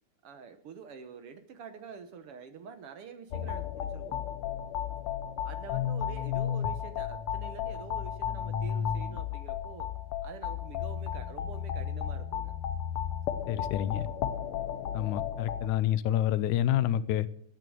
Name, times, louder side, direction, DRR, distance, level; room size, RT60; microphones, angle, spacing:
voice 1, 0.2-4.2 5.4-9.9 10.2-12.5, right 6 dB, 65° right, 1.6 m, -46 dB
sound 1, 3.3-15.7, left 9 dB, 70° left, 1.4 m, -34 dB
voice 2, 13.5-14.1 14.9-17.3, left 11 dB, 90° left, 2.2 m, -28 dB
14.5 x 9.4 x 6.3 m
omnidirectional pair, 3.4 m